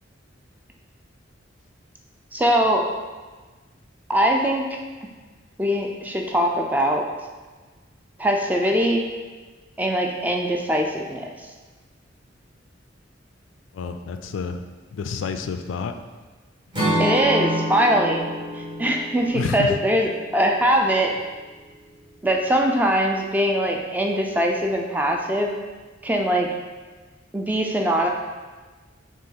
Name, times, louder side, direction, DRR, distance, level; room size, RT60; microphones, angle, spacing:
voice 1, 2.3-2.9 4.1-4.7 5.6-7.0 8.2-9.1 9.8-11.3 17.0-18.2 18.5-21.1 22.2-25.5 26.0-26.5 27.3-28.1, equal, 10° right, 1 dB, 0.4 m, -21 dB
voice 2, 13.7-14.6 14.9-15.9 19.3-19.8, left 5 dB, 85° left, 8 dB, 0.3 m, -29 dB
Acoustic guitar / Strum, 16.7-20.8, equal, 25° right, 1.2 m, -28 dB
4.4 x 3.0 x 3.8 m, 1.3 s
head